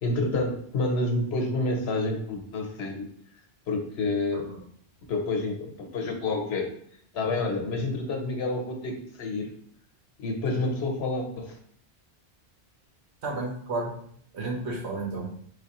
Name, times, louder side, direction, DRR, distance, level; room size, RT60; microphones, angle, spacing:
voice 1, 0.0-3.1 3.7-4.5 5.1-6.7 7.1-9.5 10.2-11.6, left 2 dB, 70° left, 3 dB, 1.0 m, -28 dB
voice 2, 13.2-13.9 14.3-15.3, right 3 dB, 75° right, 0 dB, 1.2 m, -32 dB
4.7 x 3.4 x 2.9 m, 0.63 s
omnidirectional pair, 1.1 m